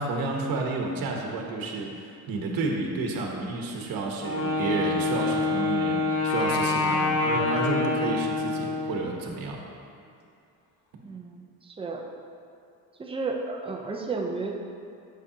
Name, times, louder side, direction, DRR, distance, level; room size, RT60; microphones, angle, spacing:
voice 1, 0.0-9.6, right 3 dB, 70° right, 0 dB, 1.1 m, -30 dB
Wind instrument woodwind instrument, 4.2-9.0, left 3 dB, 40° left, 1.0 m, -26 dB
voice 2, 11.0-12.1 13.0-14.5, right 3 dB, 15° right, 1 dB, 0.6 m, -33 dB
8.3 x 6.1 x 2.8 m, 2.5 s
cardioid pair, 135°, 36 cm